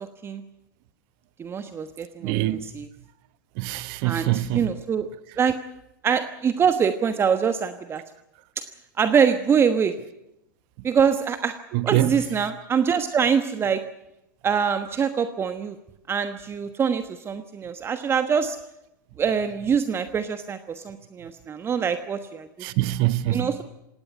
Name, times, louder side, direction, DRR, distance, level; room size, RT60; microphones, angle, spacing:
voice 1, 1.4-2.9 4.0-5.1 5.4-5.6 6.0-8.0 9.0-9.9 10.8-11.5 11.8-13.8 14.4-15.7 16.1-18.6 19.2-22.5 23.3-23.6, right 7 dB, 25° right, 1.2 m, -24 dB
voice 2, 2.2-2.7 3.6-4.7 11.7-12.2 22.6-23.5, right 15 dB, 50° right, 1.1 m, -24 dB
18.5 x 17.5 x 9.9 m
figure-of-eight pair, 95°, 11 cm